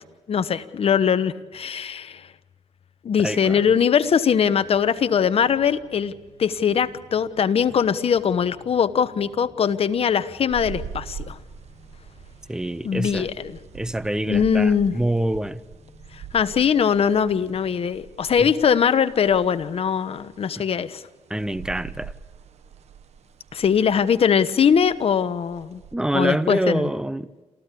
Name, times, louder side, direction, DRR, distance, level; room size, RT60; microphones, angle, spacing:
voice 1, 0.3-2.3 3.0-6.1 6.4-11.4 12.8-13.6 14.3-15.0 16.1-21.0 23.5-25.8 26.1-26.9, left 7 dB, 55° left, 1.1 m, -21 dB
voice 2, 3.2-3.6 12.5-13.3 13.7-15.6 18.4-18.5 20.6-20.7 21.3-22.1 25.9-27.4, right 1 dB, 5° right, 0.7 m, -26 dB
sound 1, 4.4-17.8, equal, 35° left, 5.4 m, -53 dB
sound 2, 10.5-26.0, right 7 dB, 70° right, 1.3 m, -43 dB
28.5 x 14.5 x 8.4 m
cardioid pair, 85°, 12 cm